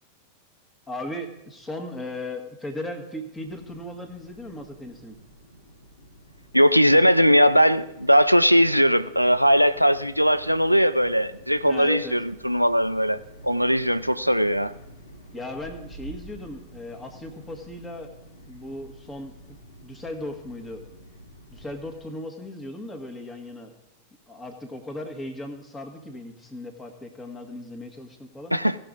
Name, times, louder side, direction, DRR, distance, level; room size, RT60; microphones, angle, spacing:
voice 1, 0.9-5.2 11.6-12.2 15.3-18.1 18.4-19.6 19.8-20.8 21.5-23.7 24.3-28.5, left 1 dB, 15° left, 4 dB, 1.6 m, -37 dB
sound 1, 3.4-22.0, right 1 dB, 60° left, 2.4 m, -48 dB
voice 2, 6.5-13.2 13.4-14.7 28.5-28.8, equal, 90° right, 12 dB, 0.4 m, -19 dB
17.5 x 6.1 x 3.9 m, 0.90 s
figure-of-eight pair, 90°, 0 cm